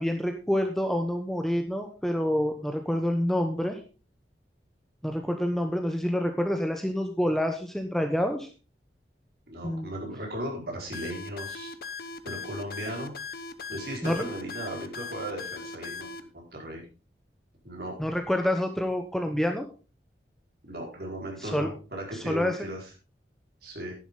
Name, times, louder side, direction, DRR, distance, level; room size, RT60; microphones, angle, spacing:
voice 1, 0.0-3.8 5.0-8.5 9.6-9.9 14.0-14.2 18.0-19.6 21.4-21.7 22.1-22.6, equal, ahead, 5 dB, 1.0 m, -27 dB
voice 2, 9.5-11.7 12.2-13.1 13.7-16.1 16.3-16.8 17.6-18.0 20.6-22.9 23.6-23.9, right 1 dB, 60° right, -1 dB, 4.9 m, -36 dB
sound 1, 10.9-16.2, left 4 dB, 55° left, 1.0 m, -39 dB
11.0 x 10.5 x 3.9 m, 0.33 s
head